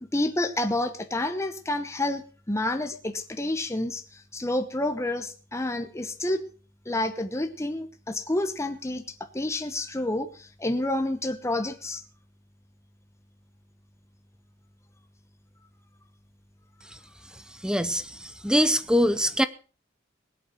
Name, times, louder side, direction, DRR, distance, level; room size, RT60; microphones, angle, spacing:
voice 1, 0.0-6.4 6.9-12.0, left 1 dB, 15° left, 1.0 m, -29 dB
voice 2, 17.6-18.1 18.4-19.5, equal, 5° right, 0.6 m, -22 dB
19.5 x 8.6 x 5.9 m
head